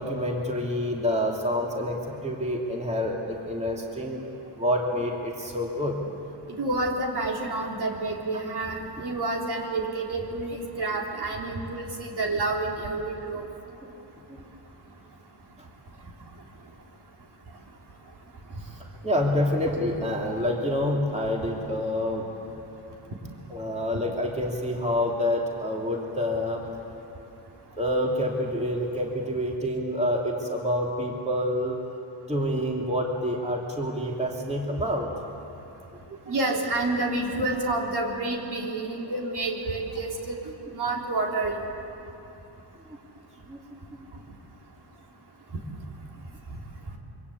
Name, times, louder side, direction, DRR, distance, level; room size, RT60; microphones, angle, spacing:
voice 1, 0.0-4.2 4.6-6.0 13.8-13.9 14.3-14.4 18.6-18.7 19.0-22.3 23.5-26.6 27.8-31.8 32.3-35.1 36.1-36.2 43.5-43.6 44.0-44.1, left 1 dB, 15° right, -1 dB, 2.8 m, -27 dB
voice 2, 6.6-13.5 36.3-40.4 40.7-41.6, right 2 dB, 55° right, 0 dB, 3.8 m, -29 dB
26.5 x 24.0 x 8.5 m, 2.9 s
cardioid pair, 125°, 46 cm